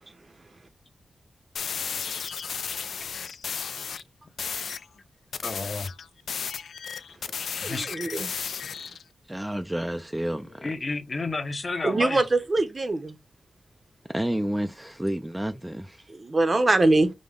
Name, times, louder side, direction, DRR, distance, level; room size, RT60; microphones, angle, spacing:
sound 1, 1.6-4.0 4.4-4.9 5.3-9.0, left 6 dB, 85° left, 0.3 m, -34 dB
voice 1, 5.4-5.9 7.6-7.9 10.6-12.2, left 3 dB, 40° left, 0.8 m, -31 dB
voice 2, 7.6-8.3 11.8-13.1 16.1-17.1, right 2 dB, 35° right, 0.7 m, -23 dB
voice 3, 9.2-10.7 14.1-16.1, right 1 dB, 10° right, 0.3 m, -30 dB
5.0 x 2.1 x 3.6 m
wide cardioid pair, 100°, 0 cm